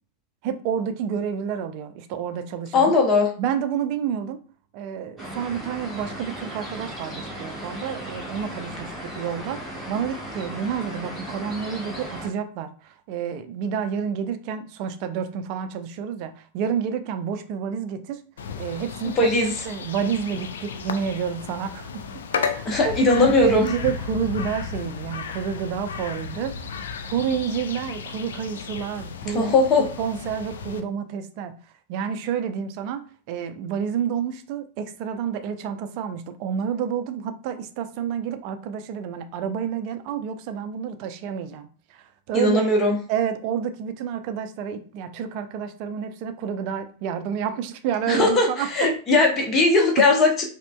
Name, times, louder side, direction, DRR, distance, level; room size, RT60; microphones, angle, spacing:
voice 1, 0.4-3.0 3.4-4.4 4.7-18.2 18.6-19.3 19.6-22.0 22.3-26.7 27.0-31.6 31.9-42.7 43.1-48.9 50.0-50.1, right 8 dB, 45° right, 9 dB, 0.4 m, -29 dB
voice 2, 2.7-3.3 19.2-19.5 22.7-23.7 29.3-29.9 42.3-42.9 48.1-48.5 48.7-50.5, left 3 dB, 30° left, 2 dB, 0.9 m, -19 dB
sound 1, 5.2-12.3, equal, 5° left, 1.3 m, -36 dB
sound 2, 18.4-30.8, left 6 dB, 65° left, 0.3 m, -34 dB
4.9 x 2.1 x 2.2 m, 0.41 s
figure-of-eight pair, 90°, 0 cm